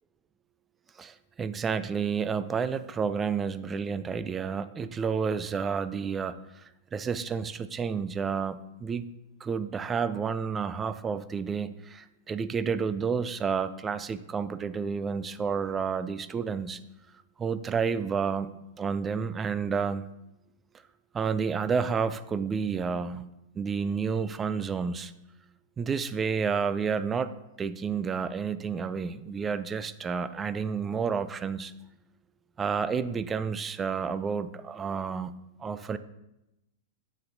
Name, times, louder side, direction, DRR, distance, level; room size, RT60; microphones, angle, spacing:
voice 1, 1.0-9.1 9.4-16.8 17.4-18.5 18.8-20.0 21.1-23.3 23.5-25.1 25.8-27.3 27.6-31.7 32.6-35.3 35.6-36.0, right 6 dB, 20° right, 14 dB, 0.4 m, -30 dB
7.6 x 7.2 x 2.6 m, 0.90 s
figure-of-eight pair, 95°, 0 cm